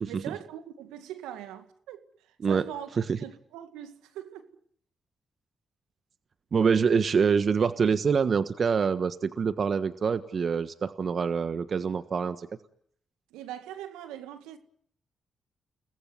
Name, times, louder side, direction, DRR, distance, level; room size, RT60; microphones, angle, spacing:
voice 1, 0.1-2.9 3.2-4.5 13.3-14.6, right 11 dB, 85° right, 2.1 m, -41 dB
voice 2, 6.5-12.5, right 6 dB, 55° right, 1.4 m, -25 dB
30.0 x 20.0 x 9.6 m
hypercardioid pair, 40°, 0 cm